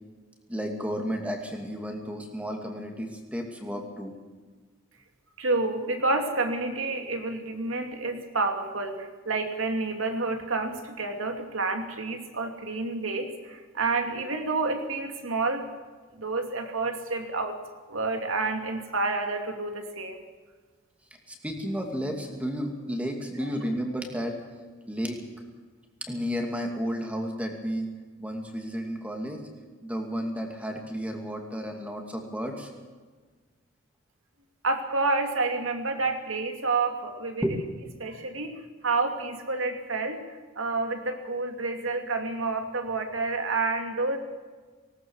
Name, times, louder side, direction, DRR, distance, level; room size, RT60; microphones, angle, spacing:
voice 1, 0.5-4.1 21.3-24.4 24.9-25.2 26.0-27.9 28.2-29.4 29.8-32.7 37.4-37.6, equal, 5° right, 2 dB, 2.5 m, -32 dB
voice 2, 5.4-15.7 16.2-17.6 17.9-20.2 34.6-37.4 38.0-38.5 38.8-40.2 40.6-44.2, right 3 dB, 85° right, 5 dB, 2.7 m, -29 dB
19.0 x 18.5 x 7.4 m, 1.4 s
head